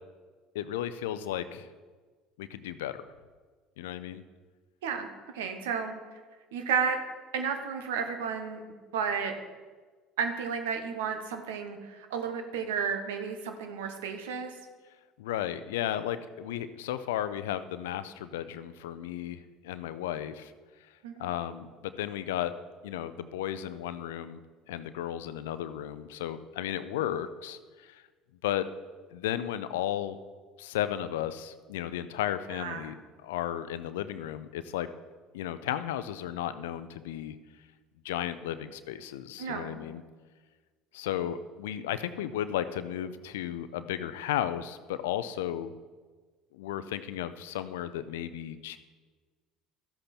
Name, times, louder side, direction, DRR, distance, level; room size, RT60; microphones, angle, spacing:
voice 1, 0.5-1.7 2.4-3.0 3.8-4.2 15.2-20.5 21.2-22.5 22.8-24.4 24.7-28.0 28.4-28.6 29.1-30.2 30.6-33.0 33.2-34.9 35.3-37.3 38.0-40.0 40.9-45.7 46.5-48.8, left 11 dB, 75° left, 13 dB, 0.5 m, -34 dB
voice 2, 5.3-6.0 6.5-7.0 7.3-8.6 8.9-9.4 10.2-14.5 21.0-21.3 32.5-32.9 39.4-39.8, right 6 dB, 75° right, 6 dB, 1.3 m, -32 dB
13.5 x 8.0 x 4.4 m, 1.4 s
hypercardioid pair, 65°, 0 cm